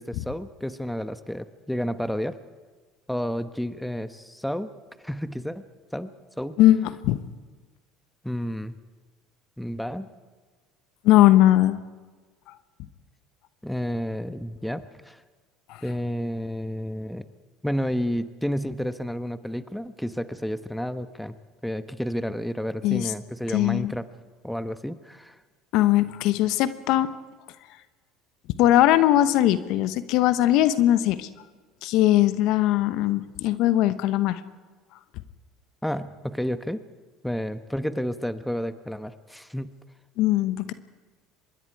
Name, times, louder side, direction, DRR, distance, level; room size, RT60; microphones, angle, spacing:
voice 1, 0.0-2.4 3.1-4.7 5.0-5.6 5.9-6.1 6.4-6.6 8.2-8.8 9.6-10.1 13.6-15.2 15.8-17.2 17.6-21.3 21.6-24.1 24.4-25.4 35.8-36.8 37.2-39.7, equal, 5° left, 11 dB, 1.2 m, -30 dB
voice 2, 6.6-7.2 11.0-11.8 15.7-15.8 22.8-23.1 23.5-23.9 25.7-27.1 28.6-31.3 31.8-34.4 40.2-40.7, left 14 dB, 65° left, 13 dB, 1.1 m, -20 dB
25.0 x 21.5 x 4.8 m, 1.4 s
hypercardioid pair, 80°, 0 cm